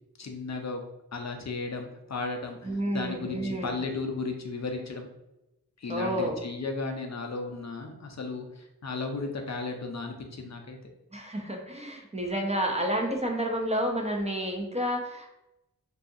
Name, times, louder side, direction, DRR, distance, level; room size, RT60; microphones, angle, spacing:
voice 1, 0.2-0.8 1.1-5.1 5.8-10.8, left 3 dB, 50° left, 3 dB, 0.5 m, -35 dB
voice 2, 2.6-3.7 5.9-6.4 11.1-15.3, equal, 20° right, 1 dB, 0.4 m, -30 dB
2.7 x 2.3 x 2.5 m, 0.92 s
wide cardioid pair, 45°, 36 cm